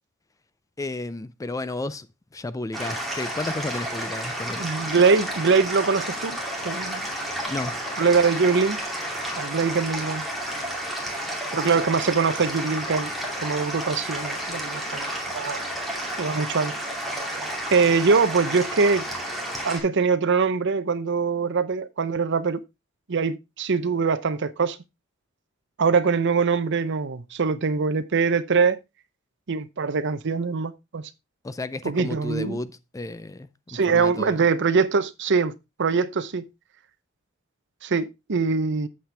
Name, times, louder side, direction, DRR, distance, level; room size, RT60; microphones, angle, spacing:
voice 1, 0.8-2.1 2.3-4.7 7.5-7.8 31.4-34.4, left 2 dB, 15° left, 0.4 m, -32 dB
sound 1, 2.7-19.8, right 1 dB, ahead, 2.4 m, -31 dB
voice 2, 4.6-6.4 6.6-7.1 8.0-8.8 9.4-10.2 11.5-13.1 13.4-15.7 16.2-16.7 17.7-19.1 19.6-22.6 23.1-24.8 25.8-28.8 29.5-31.1 31.8-32.6 33.7-35.5 35.8-36.5 37.8-38.9, right 5 dB, 60° right, 0.7 m, -23 dB
8.6 x 7.6 x 3.3 m
head